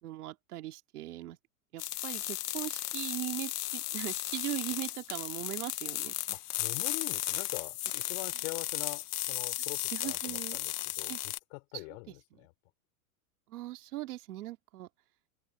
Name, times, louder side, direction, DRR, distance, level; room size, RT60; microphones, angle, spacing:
voice 1, 0.0-1.4 1.7-6.4 9.9-10.6 11.1-11.2 11.7-11.8 12.1-12.2 13.5-14.9, right 16 dB, 80° right, 3.1 m, -40 dB
sound 1, 1.8-11.4, left 14 dB, 90° left, 1.8 m, -35 dB
voice 2, 6.3-12.5, left 28 dB, 60° left, 5.6 m, -44 dB
open air
supercardioid pair, 130°, 45 cm